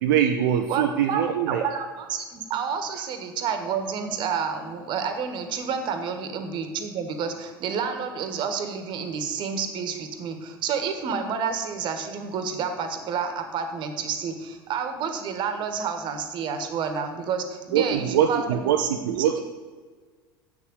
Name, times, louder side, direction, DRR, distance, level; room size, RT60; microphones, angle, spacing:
voice 1, 0.0-1.6 17.7-19.4, right 9 dB, 60° right, 4 dB, 0.7 m, -23 dB
voice 2, 0.7-19.3, right 6 dB, 40° right, 7 dB, 1.6 m, -29 dB
8.3 x 6.9 x 8.1 m, 1.5 s
figure-of-eight pair, 80°, 12 cm